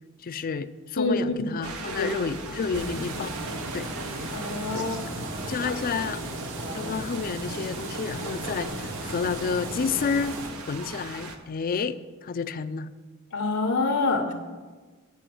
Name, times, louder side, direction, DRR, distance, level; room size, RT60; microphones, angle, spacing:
voice 1, 0.2-3.3 3.7-3.9 4.7-6.2 6.7-10.4 10.7-12.9, left 5 dB, 40° left, 12 dB, 0.4 m, -30 dB
voice 2, 1.0-1.5 2.0-2.1 4.3-5.0 5.7-5.8 13.3-14.3, left 3 dB, 90° left, 2 dB, 1.0 m, -26 dB
sound 1, 1.6-11.4, right 3 dB, 85° right, 1.0 m, -38 dB
sound 2, 2.7-10.5, right 1 dB, 60° right, 1.1 m, -36 dB
9.8 x 4.9 x 7.7 m, 1.3 s
head